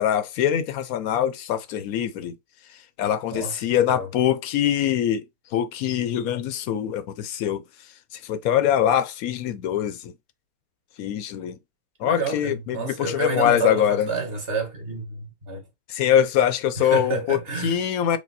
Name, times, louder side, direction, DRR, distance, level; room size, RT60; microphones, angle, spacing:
voice 1, 0.0-2.3 3.0-5.2 5.5-7.6 8.2-10.1 11.0-11.6 12.0-14.1 15.9-18.2, left 10 dB, 70° left, 0.9 m, -23 dB
voice 2, 12.0-15.6 16.8-17.8, right 3 dB, 35° right, 1.5 m, -29 dB
5.1 x 2.1 x 4.0 m
omnidirectional pair, 1.9 m